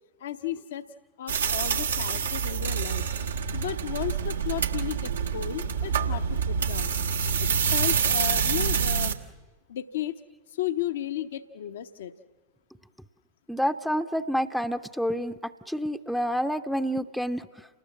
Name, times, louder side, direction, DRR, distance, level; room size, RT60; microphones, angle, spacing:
voice 1, 0.2-0.9 1.2-3.1 3.5-6.9 7.4-9.2 9.7-10.2 10.5-12.1, left 12 dB, 60° left, 9 dB, 0.8 m, -34 dB
sound 1, 1.3-9.1, right 6 dB, 70° right, 1.3 m, -27 dB
voice 2, 13.5-17.5, equal, ahead, 9 dB, 0.7 m, -28 dB
29.5 x 19.5 x 7.6 m, 1.3 s
figure-of-eight pair, 90°, 0 cm